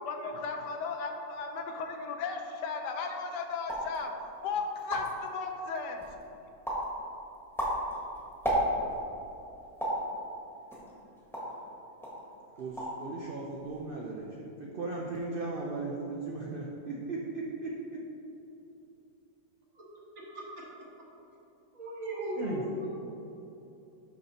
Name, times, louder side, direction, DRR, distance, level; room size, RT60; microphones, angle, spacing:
voice 1, 0.1-4.1 4.4-6.0, left 4 dB, 85° left, 4 dB, 1.3 m, -35 dB
sound 1, 3.6-4.0 4.5-4.6 4.7-5.3 5.8-6.2 6.6-6.9 7.3-9.0 9.8-10.1 10.7-11.6 12.0-12.2 12.5-13.0 13.3-13.8, equal, ahead, 1.2 m, -32 dB
voice 2, 12.6-17.7 22.4-22.6, right 3 dB, 70° right, -2 dB, 0.5 m, -37 dB
voice 3, 21.7-22.9, equal, 55° right, -4 dB, 1.7 m, -36 dB
6.3 x 5.7 x 4.1 m, 3.0 s
omnidirectional pair, 1.7 m